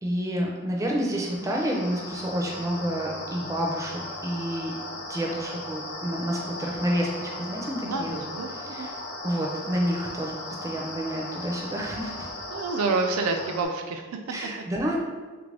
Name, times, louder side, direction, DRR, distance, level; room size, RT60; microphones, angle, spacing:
voice 1, 0.0-4.7 5.1-8.1 8.5-8.9 9.2-12.3 14.3-15.0, equal, 15° right, -1 dB, 0.4 m, -29 dB
sound 1, 1.1-13.6, left 2 dB, 50° left, 0.7 m, -37 dB
voice 2, 7.8-8.9 12.5-14.2, right 3 dB, 85° right, 5 dB, 0.3 m, -28 dB
3.4 x 2.5 x 3.2 m, 1.4 s
head